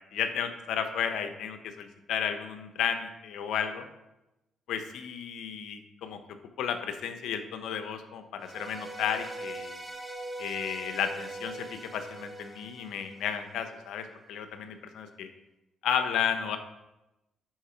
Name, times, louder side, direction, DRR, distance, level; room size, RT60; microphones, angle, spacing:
voice 1, 0.1-3.9 4.7-6.2 6.6-9.8 10.4-15.3 15.8-16.6, left 8 dB, 80° left, 8 dB, 0.8 m, -33 dB
sound 1, 8.4-13.6, right 2 dB, 15° right, 1.3 m, -41 dB
10.5 x 4.5 x 4.4 m, 0.95 s
cardioid pair, 90°, 0 cm